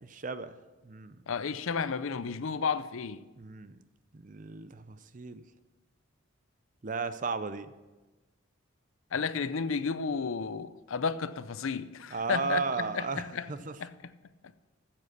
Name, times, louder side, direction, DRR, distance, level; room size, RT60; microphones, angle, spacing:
voice 1, 0.0-0.6 0.8-1.2 3.4-3.8 4.1-5.4 6.8-7.7 12.1-13.8, right 4 dB, 40° right, 0.5 m, -35 dB
voice 2, 1.3-3.2 9.1-13.5 13.8-14.1, left 5 dB, 75° left, 0.5 m, -32 dB
14.0 x 7.5 x 6.5 m
head